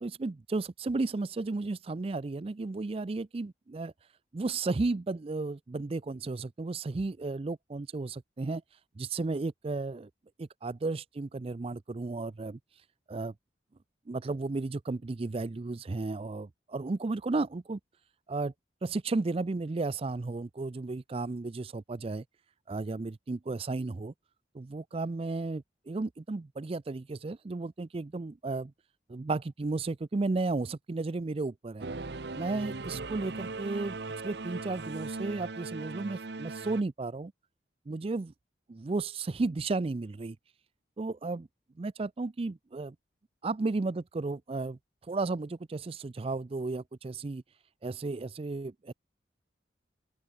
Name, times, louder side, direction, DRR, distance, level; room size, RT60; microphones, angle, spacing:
voice 1, 0.0-3.9 4.3-8.6 9.0-10.1 10.4-12.6 13.1-13.3 14.1-17.8 18.3-18.5 18.8-22.2 22.7-24.1 24.5-28.7 29.1-31.9 32.3-34.0 34.2-37.3 37.9-38.3 38.7-40.4 41.0-41.5 41.8-42.9 43.4-44.8 45.1-47.4 47.8-48.9, right 3 dB, 30° right, 0.4 m, -33 dB
Singing / Musical instrument, 31.8-36.8, right 3 dB, 65° right, 1.0 m, -39 dB
open air
head